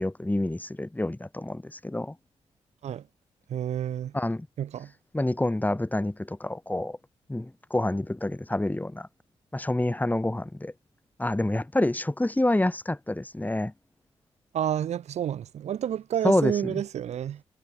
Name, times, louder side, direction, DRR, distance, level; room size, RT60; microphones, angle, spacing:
voice 1, 0.0-2.1 4.1-4.5 5.1-7.0 7.3-9.1 9.5-10.7 11.2-13.7 16.2-16.8, left 1 dB, 15° left, 5.1 m, -27 dB
voice 2, 3.5-4.1 4.6-4.9 14.5-17.4, right 10 dB, 75° right, 1.5 m, -29 dB
supercardioid pair, 55°, 12 cm